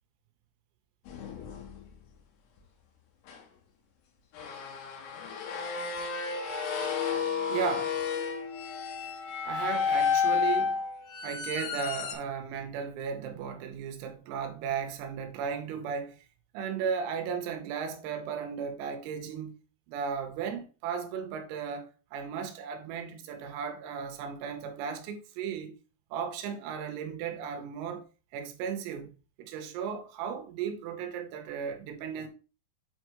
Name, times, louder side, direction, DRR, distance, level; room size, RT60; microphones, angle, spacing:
sound 1, 1.1-1.8 3.3-3.4 4.3-12.1, left 6 dB, 90° left, 4.0 m, -31 dB
voice 1, 7.5-8.0 9.5-10.8 11.2-16.2 16.5-19.6 19.9-25.7 26.1-28.0 28.3-29.1 29.4-32.3, right 7 dB, 90° right, 3.7 m, -35 dB
8.6 x 4.6 x 3.1 m
omnidirectional pair, 5.8 m